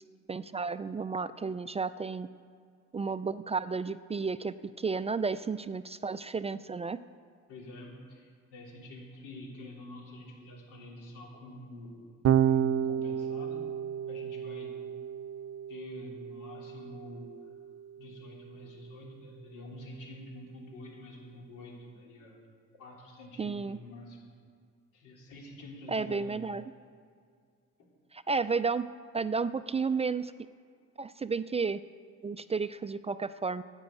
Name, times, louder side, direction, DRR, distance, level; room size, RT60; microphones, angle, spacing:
voice 1, 0.3-2.3 2.9-7.0 23.4-23.8 25.9-26.6 28.1-28.9 29.1-30.3 31.0-31.8 32.2-33.6, right 4 dB, 20° right, 13 dB, 0.3 m, -32 dB
voice 2, 7.5-12.1 12.5-13.6 14.1-14.7 15.7-17.3 18.0-22.4 22.8-24.3 24.9-26.4 27.8-27.9 28.4-28.5, left 1 dB, 90° left, -2 dB, 3.5 m, -47 dB
Electric guitar / Bass guitar, 12.2-18.6, right 9 dB, 60° right, 0.6 m, -32 dB
10.5 x 9.0 x 8.3 m, 2.2 s
cardioid pair, 90°, 30 cm